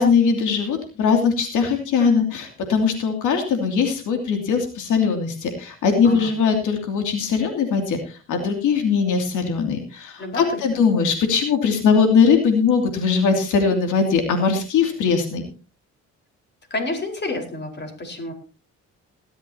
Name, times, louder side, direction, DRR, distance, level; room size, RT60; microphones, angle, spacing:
voice 1, 0.0-15.5, left 5 dB, 85° left, 4 dB, 2.8 m, -20 dB
voice 2, 16.7-18.3, left 2 dB, 35° left, 4 dB, 4.7 m, -29 dB
18.5 x 13.0 x 2.9 m, 0.33 s
cardioid pair, 90°, 30 cm